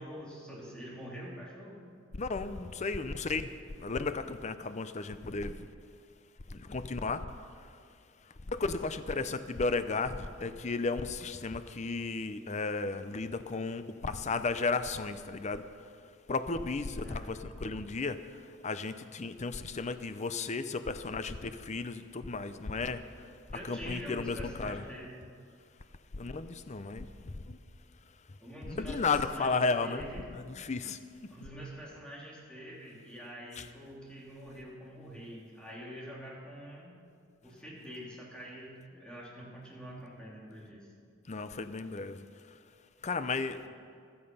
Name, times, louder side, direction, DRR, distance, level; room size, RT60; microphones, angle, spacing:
voice 1, 0.0-1.9 8.5-8.7 9.1-9.3 17.0-17.3 23.5-25.2 28.4-30.2 31.3-37.0 37.4-40.9, equal, 5° left, -4 dB, 3.3 m, -45 dB
voice 2, 2.2-3.5 3.8-5.7 6.5-7.2 8.5-15.6 16.3-18.2 18.6-23.0 23.7-24.8 26.2-27.1 27.5-27.6 28.7-30.0 30.3-31.0 33.6-33.7 41.3-42.2 43.0-43.6, left 4 dB, 35° left, 11 dB, 0.6 m, -34 dB
15.5 x 12.5 x 5.5 m, 2.2 s
head